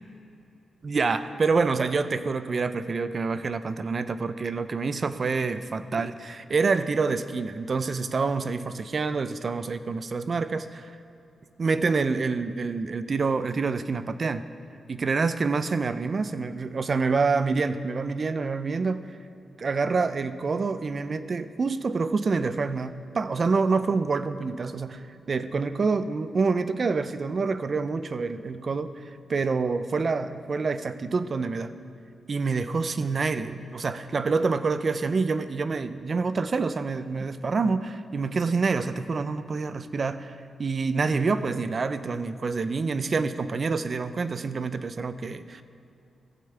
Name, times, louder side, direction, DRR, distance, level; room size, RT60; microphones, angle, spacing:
voice 1, 0.8-11.0 11.6-14.4 14.9-19.1 19.6-28.9 29.3-31.7 32.3-45.6, right 4 dB, 45° right, 12 dB, 0.6 m, -27 dB
15.0 x 14.5 x 3.4 m, 2.8 s
cardioid pair, 85°, 0 cm